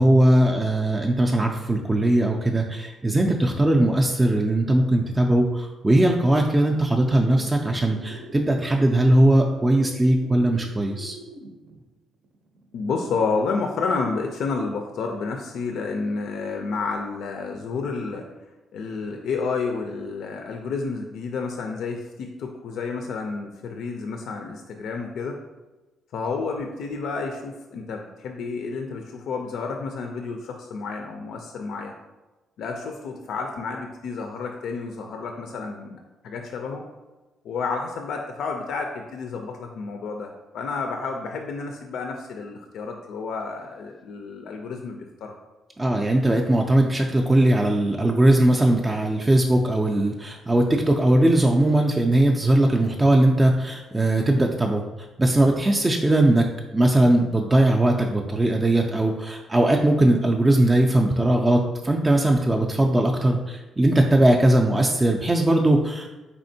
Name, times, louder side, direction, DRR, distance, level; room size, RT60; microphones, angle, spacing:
voice 1, 0.0-11.2 45.8-54.8 55.2-56.4 56.7-66.2, right 1 dB, 15° right, 1 dB, 0.3 m, -20 dB
sound 1, 5.6-5.7 6.2-11.9 12.2-13.5 14.0-14.1, right 1 dB, 65° right, 0.6 m, -44 dB
voice 2, 12.7-18.3 18.7-25.4 26.1-31.9 32.6-36.9 37.4-45.3, left 4 dB, 75° left, 3 dB, 0.3 m, -30 dB
4.2 x 3.5 x 2.6 m, 1.1 s
cardioid pair, 90°, 0 cm